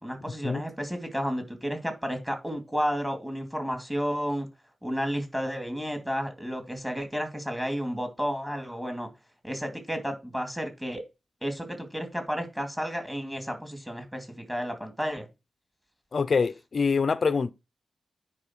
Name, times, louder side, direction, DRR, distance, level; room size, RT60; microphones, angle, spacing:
voice 1, 0.0-4.5 4.8-9.1 9.4-11.0 11.4-15.3, equal, 5° right, 2.4 m, -32 dB
voice 2, 16.1-17.5, left 5 dB, 55° left, 0.5 m, -25 dB
9.7 x 4.9 x 4.4 m
wide cardioid pair, 120°, 0 cm